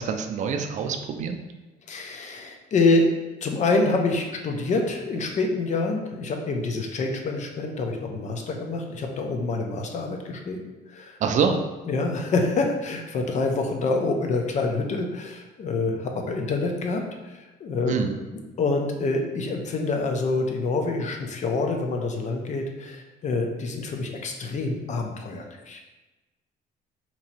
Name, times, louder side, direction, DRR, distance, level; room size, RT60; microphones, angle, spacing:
voice 1, 0.0-1.4 11.2-11.5 17.9-18.2, right 6 dB, 45° right, 5 dB, 0.4 m, -25 dB
voice 2, 1.9-3.1 3.4-11.2 11.5-11.6 11.9-18.0 18.3-25.8, left 3 dB, 45° left, 3 dB, 0.6 m, -26 dB
3.0 x 2.7 x 4.1 m, 1.1 s
cardioid pair, 110°, 17 cm